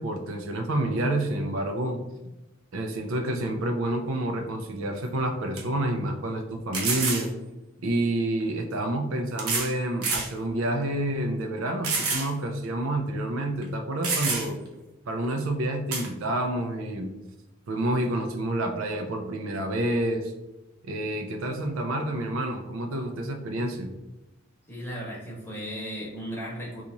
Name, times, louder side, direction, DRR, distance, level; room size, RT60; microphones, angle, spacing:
voice 1, 0.0-2.0 2.7-7.3 7.8-14.6 15.1-17.1 17.7-20.3 20.9-23.9, right 1 dB, 65° right, 4 dB, 0.4 m, -28 dB
sound 1, 5.0-5.1 5.6-5.7 6.7-7.3 8.4-8.5 9.4-9.7 10.0-10.3 10.8-10.9 11.8-12.3 12.6-12.7 13.6-13.7 14.0-14.7 15.9-16.1, right 4 dB, 85° right, 0.8 m, -28 dB
voice 2, 24.7-26.8, equal, 10° left, -5 dB, 1.0 m, -36 dB
2.9 x 2.4 x 3.8 m, 1.0 s
head